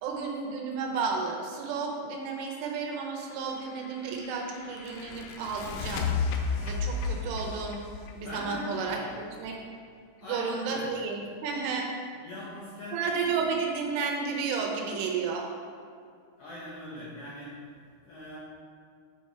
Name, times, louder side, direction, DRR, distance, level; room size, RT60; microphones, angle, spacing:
voice 1, 0.0-7.8 8.2-9.6 10.2-11.9 12.9-15.5, right 5 dB, 80° right, 1 dB, 3.2 m, -32 dB
sound 1, 3.4-9.2, left 5 dB, 90° left, 3.3 m, -34 dB
voice 2, 8.2-9.1 10.2-10.9 12.2-13.0 16.4-17.6 18.0-18.4, left 1 dB, 75° left, -8 dB, 2.3 m, -40 dB
8.9 x 4.6 x 4.4 m, 2.2 s
omnidirectional pair, 5.8 m